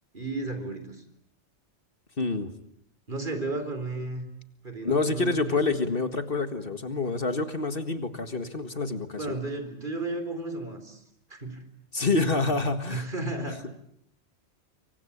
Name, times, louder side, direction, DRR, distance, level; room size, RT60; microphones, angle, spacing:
voice 1, 0.1-1.0 3.1-4.3 4.6-5.6 9.2-11.0 11.3-11.6 12.9-13.7, right 2 dB, 45° right, 8 dB, 4.2 m, -33 dB
voice 2, 2.2-2.5 4.8-9.3 11.9-13.0, left 3 dB, 55° left, 9 dB, 2.0 m, -27 dB
25.5 x 24.5 x 8.6 m, 0.70 s
omnidirectional pair, 1.2 m